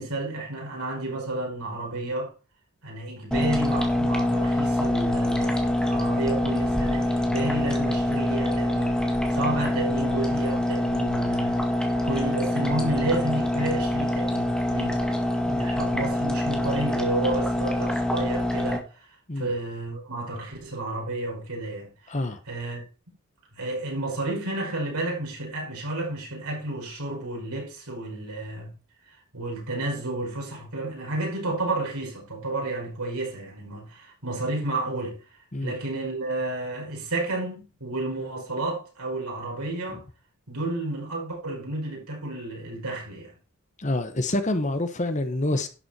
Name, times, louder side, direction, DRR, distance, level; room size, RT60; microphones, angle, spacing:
voice 1, 0.0-2.3 2.8-11.6 12.0-15.0 15.6-22.2 22.5-22.9 23.5-28.7 29.1-40.0 40.5-43.3, right 2 dB, 85° right, 5.3 m, -31 dB
sound 1, 3.3-18.8, left 1 dB, 5° left, 1.8 m, -25 dB
voice 2, 22.1-22.4 35.5-35.7 43.8-45.7, left 1 dB, 35° left, 1.1 m, -27 dB
11.5 x 7.7 x 4.4 m
head